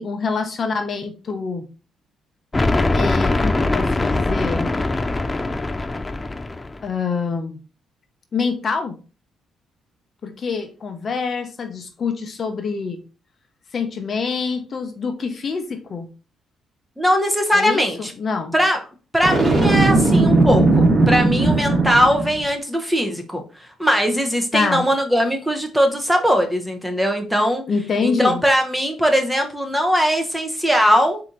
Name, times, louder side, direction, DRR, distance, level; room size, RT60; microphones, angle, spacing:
voice 1, 0.0-1.7 2.9-4.7 6.8-7.6 8.3-9.0 10.2-13.0 13.7-16.1 17.5-18.5 24.5-24.9 27.7-28.4, left 5 dB, 45° left, 6 dB, 0.7 m, -25 dB
sound 1, 2.5-6.9, left 2 dB, 20° left, 0.4 m, -21 dB
voice 2, 17.0-18.1 18.5-18.8 19.1-23.4 23.8-27.6 28.0-31.2, equal, 5° right, 4 dB, 0.9 m, -20 dB
Boom, 19.2-22.4, right 2 dB, 40° right, 1.7 m, -17 dB
4.2 x 2.8 x 3.8 m, 0.35 s
cardioid pair, 90°, 0 cm